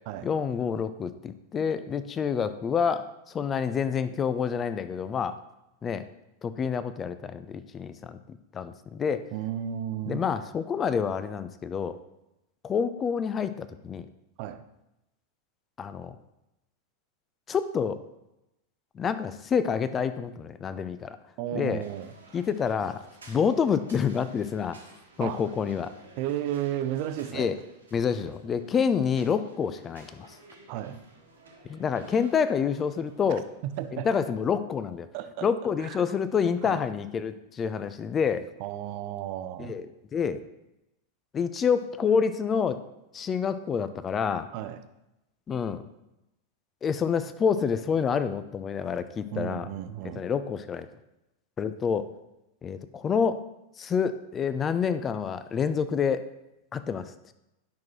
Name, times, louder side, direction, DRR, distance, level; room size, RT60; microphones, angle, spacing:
voice 1, 0.2-5.4 5.8-6.0 6.4-8.2 8.5-9.3 10.1-12.0 12.6-14.1 15.8-16.2 17.5-18.0 19.0-21.2 21.5-21.8 22.3-23.0 23.3-24.8 25.2-25.9 27.3-27.5 27.9-30.3 31.7-33.4 33.9-35.1 35.4-38.5 39.6-39.9 40.1-40.4 41.3-42.8 43.1-44.5 45.5-45.8 46.8-49.7 50.2-50.9 51.6-52.1 52.6-53.4 53.8-56.3 56.7-57.1, left 6 dB, 25° left, 12 dB, 0.4 m, -28 dB
voice 2, 9.3-10.2 14.4-14.6 21.4-22.1 25.2-25.4 26.2-27.5 30.7-31.0 33.3-34.1 35.1-35.5 35.8-36.1 36.6-36.8 38.6-39.7 44.5-44.8 49.3-50.2, right 11 dB, 45° right, 11 dB, 0.5 m, -33 dB
sound 1, 21.8-33.9, right 2 dB, 70° right, 1.4 m, -54 dB
10.5 x 5.9 x 3.1 m, 0.90 s
figure-of-eight pair, 90°, 0 cm